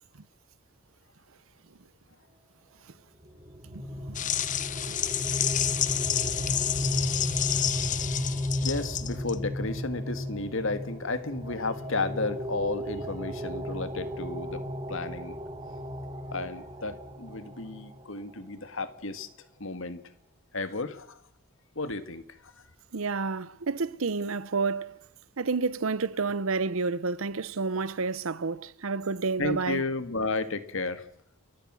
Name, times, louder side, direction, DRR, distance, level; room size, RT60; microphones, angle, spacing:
sound 1, 3.2-18.0, left 1 dB, 25° right, 1.7 m, -34 dB
sound 2, 4.1-9.3, left 11 dB, 35° left, 0.8 m, -29 dB
voice 1, 8.6-14.6 14.9-15.4 16.3-19.3 19.6-20.0 20.5-21.2 21.8-22.5 29.4-31.1, left 3 dB, 60° left, 1.8 m, -33 dB
voice 2, 22.9-25.0 25.4-29.8, right 4 dB, 65° right, 0.8 m, -30 dB
29.5 x 15.0 x 6.3 m
head